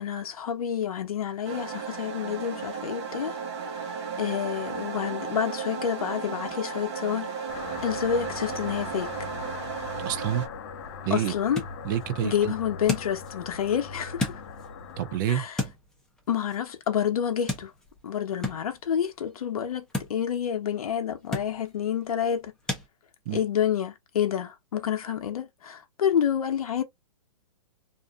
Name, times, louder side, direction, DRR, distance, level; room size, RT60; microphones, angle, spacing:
voice 1, 0.0-3.4 3.7-7.5 7.8-9.3 11.1-11.6 12.2-14.4 15.3-15.6 16.3-17.7 18.0-22.5 23.3-26.8, left 8 dB, 85° left, 0.7 m, -29 dB
sound 1, 1.4-10.5, right 5 dB, 50° right, 0.9 m, -35 dB
sound 2, 7.5-15.2, left 5 dB, 45° left, 0.5 m, -40 dB
voice 2, 10.1-10.4 11.0-11.3 11.8-12.5 15.0-15.5 23.3-23.4, right 11 dB, 35° right, 0.4 m, -28 dB
sound 3, 10.5-22.9, left 2 dB, 5° left, 0.6 m, -38 dB
2.5 x 2.5 x 2.3 m
hypercardioid pair, 145°, 18 cm